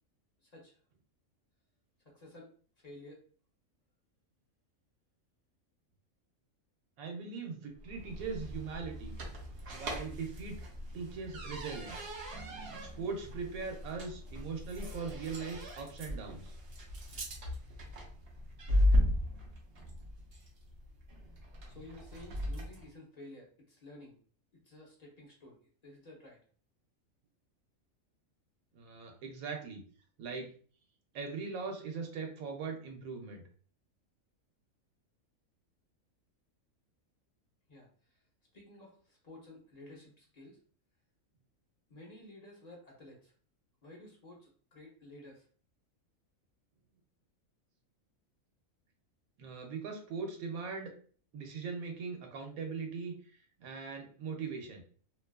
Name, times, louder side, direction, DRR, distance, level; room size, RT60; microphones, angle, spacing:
voice 1, 0.4-0.8 2.0-2.5 2.8-3.2 21.7-24.2 24.6-26.4 37.7-38.2 38.5-40.6 41.9-43.3 43.8-45.5, left 1 dB, 45° left, -2 dB, 0.5 m, -53 dB
voice 2, 7.0-9.1 9.7-10.6 10.9-12.1 12.8-16.5 28.7-29.8 30.2-30.5 31.1-33.4 49.4-50.9 51.3-54.8, right 5 dB, 90° right, 3 dB, 1.1 m, -40 dB
sound 1, 7.8-22.9, left 1 dB, 60° right, 0.7 m, -36 dB
2.5 x 2.3 x 2.2 m, 0.43 s
omnidirectional pair, 1.4 m